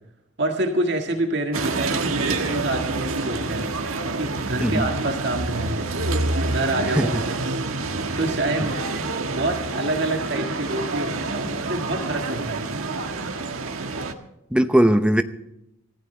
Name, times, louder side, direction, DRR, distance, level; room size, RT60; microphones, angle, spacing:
voice 1, 0.4-3.7 4.1-5.9 6.5-7.6 8.1-8.8 9.3-12.7, right 2 dB, 55° right, 3 dB, 1.9 m, -27 dB
sound 1, 1.5-14.1, right 3 dB, 90° right, 1.6 m, -27 dB
voice 2, 14.5-15.2, right 1 dB, 5° right, 9 dB, 0.8 m, -18 dB
24.5 x 15.0 x 3.3 m, 0.85 s
head